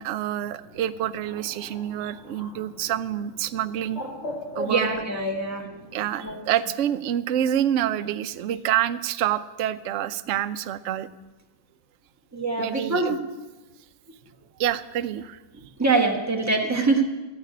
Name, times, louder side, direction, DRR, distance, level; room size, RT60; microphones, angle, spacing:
voice 1, 0.0-4.0 4.6-4.9 5.9-11.1 12.6-13.2 14.6-15.4, right 11 dB, 80° right, 11 dB, 0.6 m, -27 dB
Bird, 0.6-6.1, equal, 35° left, 3.0 m, -40 dB
voice 2, 4.6-5.6 6.2-6.4 12.3-13.2 15.8-17.0, right 3 dB, 10° right, 0 dB, 1.5 m, -24 dB
13.5 x 6.6 x 9.3 m, 1.1 s
omnidirectional pair, 1.9 m